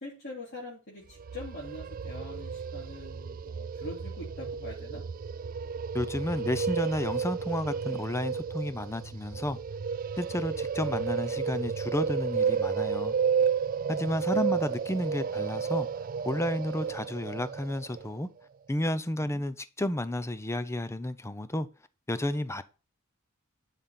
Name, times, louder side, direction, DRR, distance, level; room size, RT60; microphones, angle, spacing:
voice 1, 0.0-5.1 13.9-14.6 19.2-19.4, left 2 dB, 50° left, 3.1 m, -44 dB
sound 1, 1.1-18.1, right 6 dB, 40° right, 0.4 m, -32 dB
voice 2, 5.9-9.6 10.2-13.1 13.9-15.9 16.2-18.3 18.7-21.7 22.1-22.6, left 1 dB, 15° left, 0.6 m, -31 dB
11.5 x 5.3 x 4.3 m
head